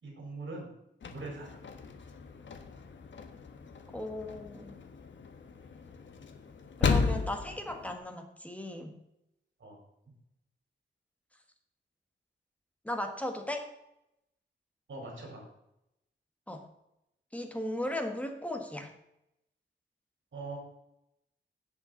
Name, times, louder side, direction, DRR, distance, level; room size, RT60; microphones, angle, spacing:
voice 1, 0.0-0.7 1.1-1.6 9.6-9.8 14.9-15.4 20.3-20.6, right 3 dB, 70° right, -1 dB, 4.4 m, -42 dB
sound 1, 1.0-8.0, left 5 dB, 70° left, 1.1 m, -35 dB
voice 2, 3.9-4.8 6.8-9.0 12.8-13.7 16.5-16.7 17.3-18.9, left 1 dB, 5° left, 5 dB, 1.4 m, -36 dB
16.5 x 5.8 x 3.9 m, 0.84 s
wide cardioid pair, 155°, 20 cm